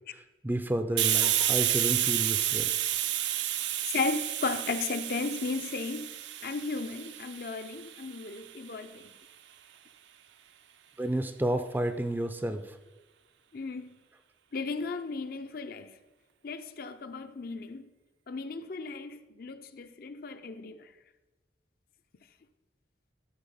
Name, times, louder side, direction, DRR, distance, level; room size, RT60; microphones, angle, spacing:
voice 1, 0.4-2.7 11.0-12.8, right 1 dB, 10° right, 0.4 m, -31 dB
Hiss, 1.0-8.4, right 12 dB, 70° right, 0.5 m, -30 dB
voice 2, 3.8-6.1 6.4-9.1 13.5-14.0 14.5-15.9 16.4-17.9 18.3-20.9, left 4 dB, 55° left, 0.5 m, -35 dB
12.5 x 4.5 x 5.6 m
head